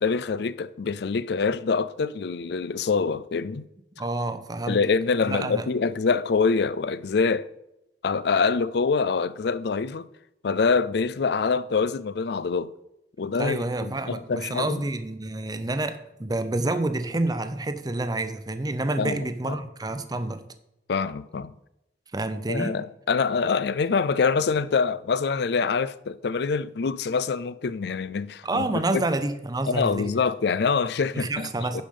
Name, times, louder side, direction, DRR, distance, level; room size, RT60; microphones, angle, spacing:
voice 1, 0.0-3.6 4.7-7.5 8.0-10.1 10.4-12.7 13.2-14.8 19.0-19.2 19.4-19.6 20.9-21.5 22.5-29.0 29.7-31.8, left 5 dB, 65° left, 0.4 m, -25 dB
voice 2, 4.0-4.8 5.2-5.7 13.4-20.5 22.1-22.8 28.4-30.1 31.1-31.8, right 2 dB, 20° right, 0.7 m, -28 dB
10.5 x 5.2 x 5.3 m
head